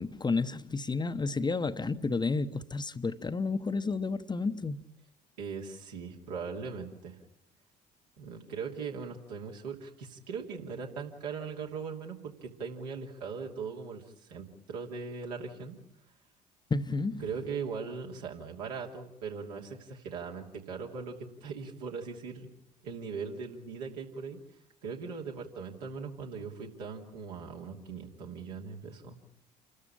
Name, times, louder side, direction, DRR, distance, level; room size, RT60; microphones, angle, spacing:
voice 1, 0.0-4.8 16.7-17.2, left 4 dB, 20° left, 1.0 m, -31 dB
voice 2, 5.4-7.2 8.2-15.8 17.2-21.2 21.4-22.5 22.8-24.4 24.8-29.2, right 5 dB, 75° right, 2.9 m, -39 dB
28.0 x 13.0 x 8.8 m
figure-of-eight pair, 55°, 21 cm